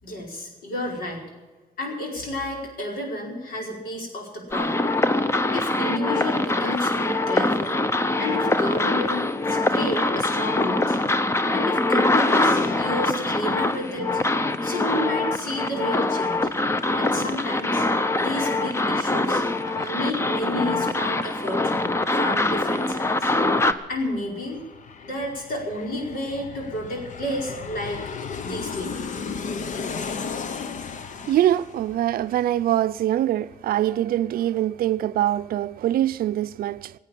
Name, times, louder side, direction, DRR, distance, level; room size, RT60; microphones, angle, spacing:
voice 1, 0.0-1.2 1.8-5.0 5.5-7.8 8.2-11.0 11.5-14.2 14.6-16.4 17.0-17.9 18.2-21.6 22.1-23.3 23.9-24.6 25.0-28.0 28.4-28.9, left 1 dB, 75° left, 4.9 m, -31 dB
sound 1, 4.5-23.7, left 2 dB, 15° left, 0.7 m, -23 dB
Aircraft, 22.1-33.2 33.5-33.6, left 5 dB, 55° left, 1.0 m, -36 dB
voice 2, 31.3-36.9, right 12 dB, 85° right, 0.5 m, -23 dB
17.5 x 8.4 x 8.6 m
cardioid pair, 135°, 15 cm